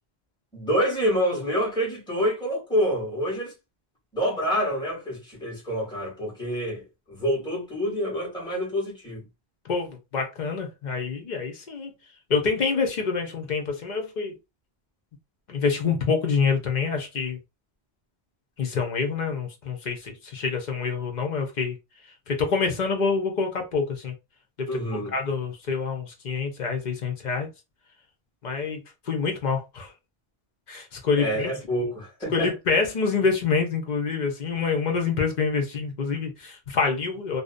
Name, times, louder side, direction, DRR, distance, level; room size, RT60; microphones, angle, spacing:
voice 1, 0.5-3.5 4.1-9.2 24.7-25.1 31.2-32.5, equal, 5° left, 1.1 m, -27 dB
voice 2, 9.7-11.9 12.3-14.3 15.5-17.4 18.6-21.8 22.3-24.1 24.6-24.7 25.1-27.5 28.4-29.9 30.7-31.5 32.3-37.4, left 5 dB, 55° left, 0.6 m, -26 dB
2.6 x 2.0 x 2.4 m
omnidirectional pair, 1.1 m